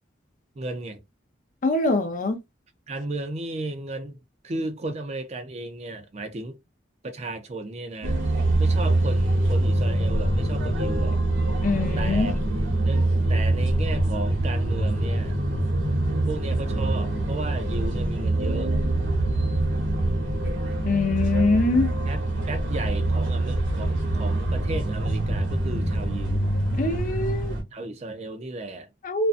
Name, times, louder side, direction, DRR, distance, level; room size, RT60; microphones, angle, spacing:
voice 1, 0.6-1.0 2.9-4.2 4.4-6.6 7.0-8.2 8.6-11.2 12.0-12.4 12.8-15.4 16.3-18.7 22.1-26.5 27.7-28.9, right 2 dB, 35° right, 0.4 m, -34 dB
voice 2, 1.6-2.4 11.6-12.3 20.8-21.9 26.8-27.6 29.0-29.3, left 3 dB, 45° left, 0.5 m, -23 dB
sound 1, 8.0-27.6, right 1 dB, 85° right, 1.0 m, -24 dB
2.5 x 2.2 x 2.4 m
head